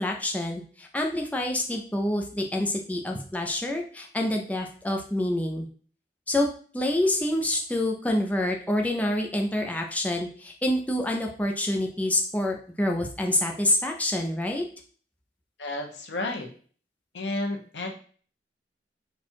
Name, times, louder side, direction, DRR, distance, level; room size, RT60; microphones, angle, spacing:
voice 1, 0.0-5.7 6.3-14.6, left 1 dB, 10° left, 1 dB, 0.5 m, -27 dB
voice 2, 15.6-16.5 17.1-17.9, left 2 dB, 85° left, 2 dB, 0.9 m, -31 dB
4.3 x 2.4 x 4.4 m, 0.43 s
head